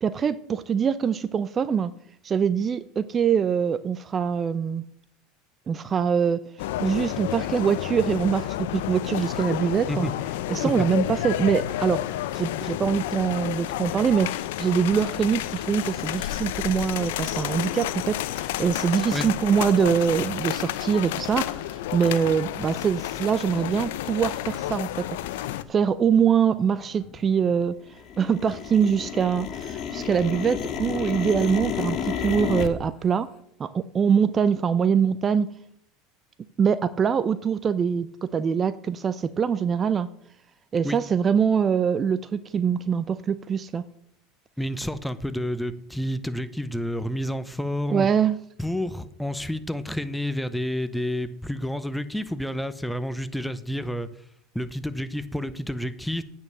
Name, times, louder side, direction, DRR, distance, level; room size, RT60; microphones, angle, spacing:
voice 1, 0.0-1.9 2.2-4.8 5.7-6.4 6.8-10.1 10.5-12.0 12.3-21.6 21.9-25.1 25.7-27.8 28.2-33.3 33.6-35.5 36.6-40.1 40.7-43.8 47.9-48.4, right 7 dB, 30° right, 15 dB, 0.5 m, -24 dB
sound 1, 6.6-25.6, left 14 dB, 75° left, 0.6 m, -30 dB
sound 2, 24.1-24.2 24.4-25.0 25.2-27.6 27.9-32.7, left 8 dB, 50° left, 1.1 m, -32 dB
voice 2, 44.6-48.1 48.6-54.1 54.5-56.2, left 1 dB, 5° left, 13 dB, 0.8 m, -29 dB
9.1 x 5.6 x 7.2 m, 0.68 s
hypercardioid pair, 100°, 0 cm